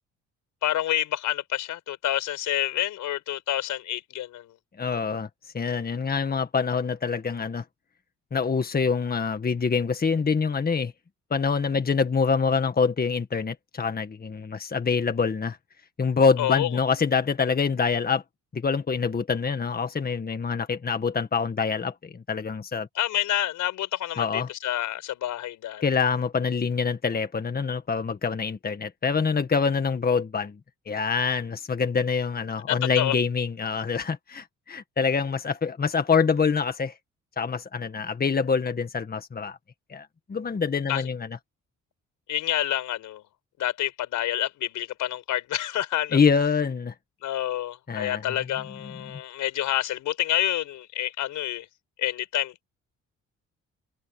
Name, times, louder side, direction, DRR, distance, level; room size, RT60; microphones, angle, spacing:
voice 1, 0.6-4.5 16.4-16.7 22.9-25.8 32.7-33.1 40.9-41.1 42.3-43.2 43.6-46.2 47.2-51.7 52.0-52.7, left 13 dB, 85° left, 4.9 m, -28 dB
voice 2, 4.8-5.3 5.5-7.6 8.3-10.9 11.3-15.6 16.0-18.2 18.5-22.9 24.2-24.5 25.8-30.6 30.9-36.9 37.4-39.6 39.9-41.4 46.1-46.9 47.9-48.2 48.8-49.2, left 5 dB, 30° left, 1.8 m, -25 dB
cardioid pair, 90°, 30 cm